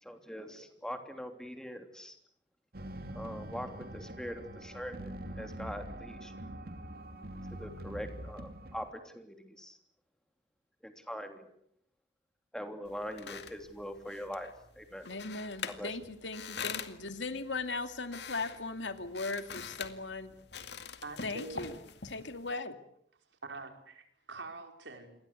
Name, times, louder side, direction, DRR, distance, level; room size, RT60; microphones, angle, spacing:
voice 1, 0.0-2.1 3.1-6.3 7.6-9.8 10.8-11.5 12.5-14.5 14.8-15.1 15.6-16.0, equal, 5° left, 6 dB, 3.2 m, -42 dB
sound 1, 2.7-8.9, right 1 dB, 55° right, 2.7 m, -44 dB
sound 2, 12.8-22.5, left 6 dB, 65° left, 2.2 m, -45 dB
voice 2, 15.0-20.3 21.2-21.7 22.0-22.8, left 3 dB, 90° left, 9 dB, 2.4 m, -38 dB
voice 3, 21.0-21.7 23.3-25.3, right 3 dB, 85° right, 5 dB, 5.2 m, -45 dB
28.0 x 22.5 x 8.3 m, 0.70 s
head